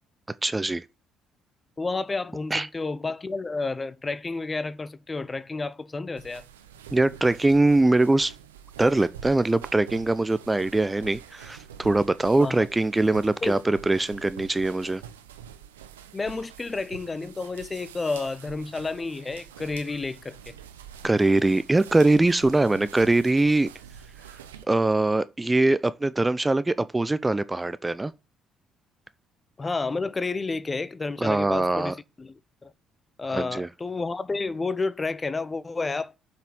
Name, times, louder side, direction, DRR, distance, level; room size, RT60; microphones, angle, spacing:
voice 1, 0.4-0.8 2.5-2.7 6.9-8.3 8.8-15.0 21.0-23.7 24.7-28.1 31.2-31.9 33.3-33.7, right 2 dB, 20° right, 0.7 m, -22 dB
voice 2, 1.8-6.4 12.4-12.6 13.4-13.6 16.1-20.6 29.6-32.3 32.6-32.7 33.2-36.2, left 3 dB, 30° left, 1.0 m, -30 dB
sound 1, 6.2-24.6, right 9 dB, 90° right, 0.9 m, -46 dB
7.6 x 5.9 x 7.6 m
hypercardioid pair, 50°, 0 cm